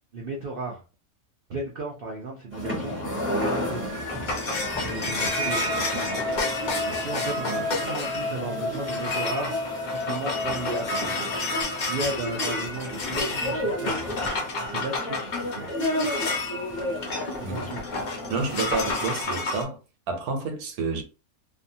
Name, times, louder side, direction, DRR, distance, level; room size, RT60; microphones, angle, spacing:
voice 1, 0.1-0.8 1.5-3.8 4.9-6.3 6.8-11.3 11.9-14.2 14.6-15.7 17.5-17.8, right 2 dB, 70° right, 0.5 m, -35 dB
sound 1, 2.5-19.2, left 1 dB, 10° right, 0.7 m, -33 dB
sound 2, 3.8-19.6, left 2 dB, 55° left, 0.5 m, -31 dB
sound 3, 5.2-11.2, left 3 dB, 85° left, 1.1 m, -33 dB
voice 2, 18.3-19.8 20.1-21.0, right 3 dB, 90° right, 1.1 m, -29 dB
2.6 x 2.3 x 2.6 m
omnidirectional pair, 1.6 m